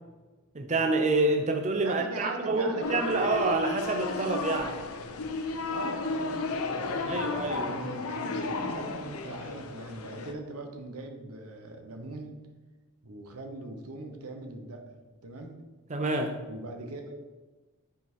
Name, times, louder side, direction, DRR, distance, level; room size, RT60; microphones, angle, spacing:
voice 1, 0.5-4.8 7.1-7.7 15.9-16.4, right 2 dB, 30° right, 3 dB, 0.6 m, -27 dB
voice 2, 1.8-3.4 5.7-12.4 13.0-15.5 16.4-17.4, right 2 dB, 85° right, 4 dB, 1.1 m, -41 dB
sound 1, 2.8-10.3, left 3 dB, 75° left, 0.7 m, -33 dB
8.3 x 4.5 x 4.5 m, 1.2 s
head